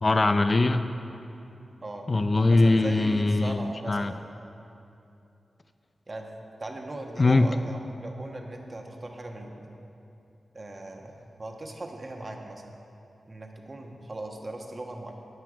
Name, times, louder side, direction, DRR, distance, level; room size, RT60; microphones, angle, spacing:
voice 1, 0.0-0.9 2.1-4.1 7.2-7.5, left 2 dB, 45° left, 9 dB, 0.5 m, -22 dB
voice 2, 2.5-4.3 6.1-6.3 6.6-9.8 10.5-12.8 13.2-15.1, right 2 dB, 45° right, 2 dB, 1.3 m, -39 dB
16.5 x 5.9 x 5.1 m, 2.7 s
cardioid pair, 45°, 0 cm